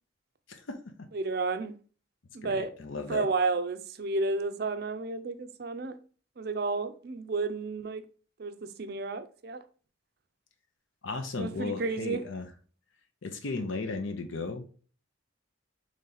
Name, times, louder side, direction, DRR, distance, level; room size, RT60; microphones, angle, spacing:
voice 1, 0.5-1.1 2.4-3.3 11.0-12.5 13.2-14.7, left 3 dB, 75° left, 0.7 m, -35 dB
voice 2, 1.1-1.7 2.3-2.7 3.1-6.0 6.4-8.1 8.4-9.6 11.4-12.2, right 3 dB, 50° right, 0.4 m, -31 dB
4.0 x 3.3 x 3.9 m
head